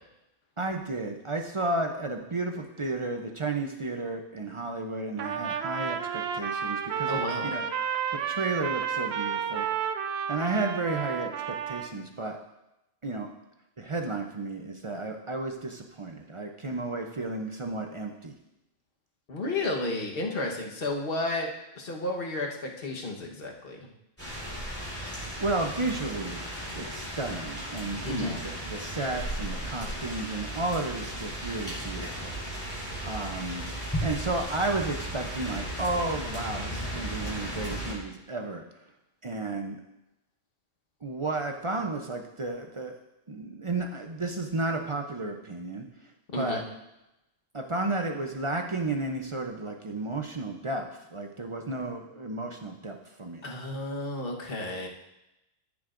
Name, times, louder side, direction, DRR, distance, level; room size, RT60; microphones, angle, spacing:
voice 1, 0.6-7.7 8.3-9.7 10.3-12.4 13.0-13.3 13.8-18.3 24.5-24.7 25.4-32.7 33.0-33.7 34.0-38.6 39.2-39.8 41.0-42.9 43.3-45.9 46.4-46.6 47.5-53.4, right 2 dB, 40° right, 3 dB, 0.5 m, -33 dB
Trumpet, 5.2-11.9, right 7 dB, 60° right, 0.8 m, -31 dB
voice 2, 7.1-7.5 19.3-21.5 21.7-23.9 28.0-28.4 46.3-46.6 53.4-54.9, left 2 dB, 45° left, 0 dB, 1.3 m, -32 dB
sound 1, 24.2-37.9, right 1 dB, 10° left, 3.2 m, -35 dB
13.5 x 7.1 x 2.5 m, 0.91 s
omnidirectional pair, 1.3 m